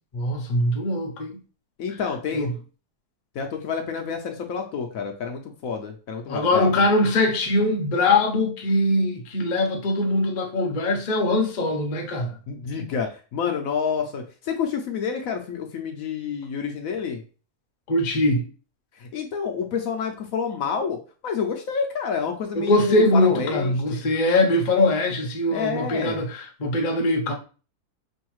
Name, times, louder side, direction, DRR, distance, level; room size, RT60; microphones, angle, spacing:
voice 1, 0.1-1.4 2.3-2.5 6.3-12.3 17.9-18.5 22.5-27.3, left 2 dB, 40° left, 0.7 m, -22 dB
voice 2, 1.8-2.5 3.3-6.8 12.5-17.2 19.0-24.0 25.5-26.2, left 6 dB, 70° left, 1.0 m, -29 dB
5.4 x 2.6 x 3.0 m
omnidirectional pair, 1.6 m